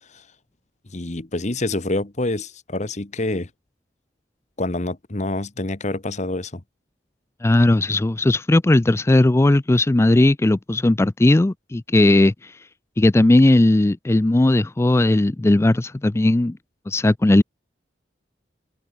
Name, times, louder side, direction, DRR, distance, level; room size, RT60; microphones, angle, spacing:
voice 1, 0.9-3.5 4.6-6.6, left 2 dB, 40° left, 1.3 m, -26 dB
voice 2, 7.4-12.7 13.0-16.6 16.9-17.4, left 2 dB, 15° left, 0.4 m, -17 dB
open air
head